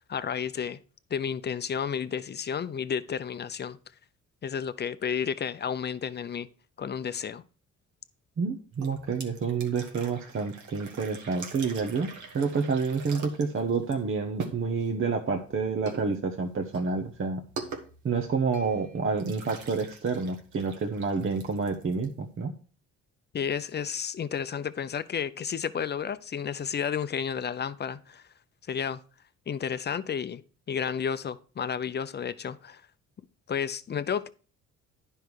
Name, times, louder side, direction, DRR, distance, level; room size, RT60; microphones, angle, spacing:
voice 1, 0.1-0.8 1.1-3.8 4.4-6.5 6.8-7.4 23.3-28.2 28.7-29.0 29.5-30.4 30.7-32.8 33.5-34.3, left 7 dB, 35° left, 0.7 m, -31 dB
voice 2, 8.4-17.4 18.0-22.5, right 5 dB, 45° right, 1.1 m, -29 dB
sound 1, 8.7-22.4, right 5 dB, 75° right, 1.8 m, -44 dB
10.5 x 5.5 x 4.8 m
cardioid pair, 90°, 30 cm